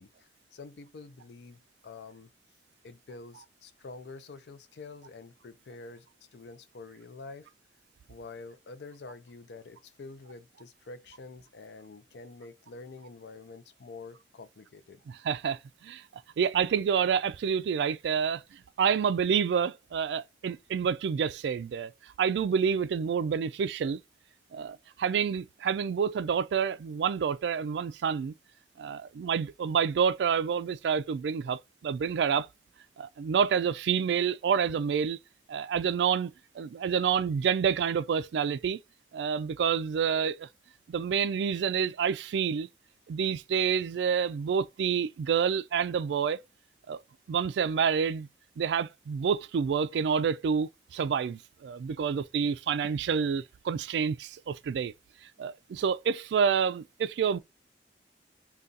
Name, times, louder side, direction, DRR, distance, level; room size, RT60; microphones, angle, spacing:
voice 1, 0.0-2.3 2.8-6.1 6.3-7.5 8.1-15.0, left 3 dB, 75° left, 0.5 m, -47 dB
voice 2, 15.2-16.0 16.4-21.9 22.2-24.0 24.5-28.3 28.8-32.5 33.0-35.2 35.5-38.8 39.1-40.5 40.9-42.7 43.1-46.4 46.9-47.0 47.3-48.3 48.6-54.9 55.4-57.4, right 7 dB, 75° right, 0.3 m, -28 dB
3.7 x 2.3 x 2.7 m
head